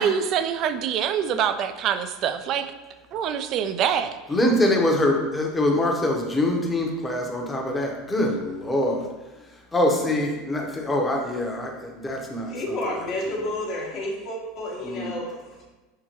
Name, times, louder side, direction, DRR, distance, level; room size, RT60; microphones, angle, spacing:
voice 1, 0.0-2.7 3.1-4.2, right 8 dB, 50° right, 9 dB, 0.3 m, -25 dB
voice 2, 4.3-9.0 9.7-12.5 14.8-15.1, left 1 dB, 15° left, 1 dB, 0.8 m, -24 dB
voice 3, 12.5-15.7, left 1 dB, 50° left, -1 dB, 1.0 m, -30 dB
5.6 x 2.1 x 2.9 m, 1.2 s
hypercardioid pair, 90°, 0 cm